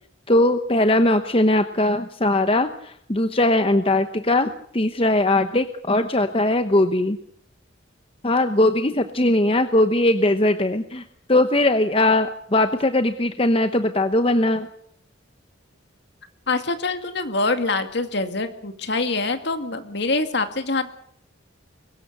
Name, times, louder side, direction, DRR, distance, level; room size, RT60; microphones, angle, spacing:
voice 1, 0.3-7.2 8.2-11.0 11.3-14.7, left 1 dB, 25° left, 8 dB, 0.9 m, -20 dB
voice 2, 16.5-20.9, left 3 dB, 55° left, 8 dB, 2.2 m, -25 dB
23.0 x 19.5 x 6.8 m, 0.68 s
head